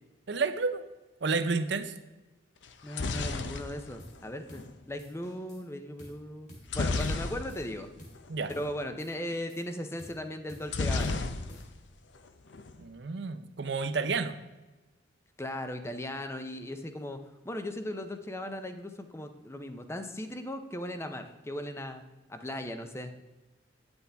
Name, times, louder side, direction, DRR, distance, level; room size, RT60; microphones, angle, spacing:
voice 1, 0.3-0.8 1.2-1.9 8.3-8.5 12.8-14.3, right 4 dB, 60° right, 11 dB, 0.6 m, -30 dB
sound 1, 2.6-4.7 6.7-7.8 8.1-8.3 8.5-8.8 10.7-11.8 12.1-12.8, left 3 dB, 70° left, 0.6 m, -32 dB
voice 2, 2.8-6.5 6.7-7.9 8.5-11.2 15.4-22.0 22.3-23.1, left 1 dB, 15° left, 8 dB, 0.6 m, -38 dB
sound 2, 4.0-4.2 4.5-4.7 5.0-5.7 6.0-6.2 6.5-6.7 7.0-7.7 8.0-8.2 8.5-8.7 9.0-9.7 10.0-10.2 10.5-10.7 11.0-11.9, equal, 40° left, 2.5 m, -52 dB
9.6 x 8.0 x 3.4 m, 1.1 s
head